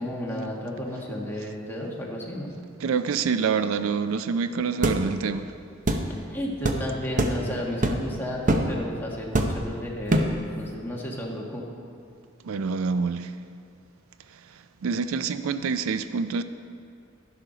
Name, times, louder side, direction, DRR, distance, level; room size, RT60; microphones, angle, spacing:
voice 1, 0.0-2.5 6.3-11.6, left 1 dB, 10° left, -3 dB, 1.3 m, -33 dB
voice 2, 2.8-5.5 12.4-13.3 14.8-16.4, right 5 dB, 70° right, 11 dB, 0.4 m, -26 dB
sound 1, 4.8-5.0 5.9-6.1 6.6-6.8 7.2-7.4 7.8-8.1 8.5-8.7 9.3-9.7 10.1-10.4, right 1 dB, 35° right, 0.7 m, -23 dB
12.0 x 11.0 x 3.9 m, 2.5 s
head